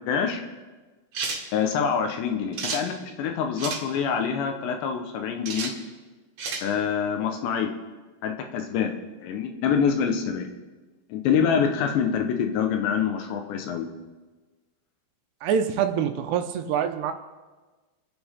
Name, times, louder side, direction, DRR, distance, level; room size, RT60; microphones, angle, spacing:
voice 1, 0.1-0.4 1.5-5.7 6.6-7.7 8.2-8.9 9.2-10.5 11.1-13.9, left 7 dB, 75° left, 4 dB, 3.3 m, -25 dB
sound 1, 1.1-1.4 2.5-2.8 3.6-3.8 5.5-5.7 6.4-6.7, right 4 dB, 50° right, 3.0 m, -31 dB
voice 2, 15.4-17.1, right 8 dB, 80° right, 7 dB, 2.8 m, -25 dB
29.5 x 10.5 x 3.7 m, 1.3 s
omnidirectional pair, 5.1 m